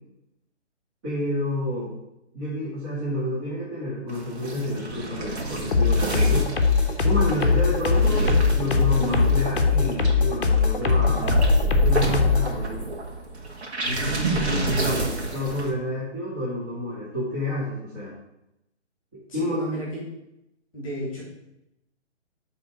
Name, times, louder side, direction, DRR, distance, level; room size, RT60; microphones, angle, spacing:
voice 1, 1.0-1.9 2.3-6.5 7.0-11.4 11.8-12.8 14.4-18.1 19.1-19.6, left 1 dB, 15° right, -10 dB, 1.8 m, -29 dB
sound 1, 4.1-15.7, right 3 dB, 65° right, 1.8 m, -28 dB
sound 2, 5.7-12.5, left 5 dB, 50° left, 0.9 m, -21 dB
voice 2, 13.8-14.2 19.3-20.0 20.7-21.2, right 1 dB, 5° left, -6 dB, 2.2 m, -32 dB
8.1 x 3.6 x 5.9 m, 0.86 s
hypercardioid pair, 175°, 35 cm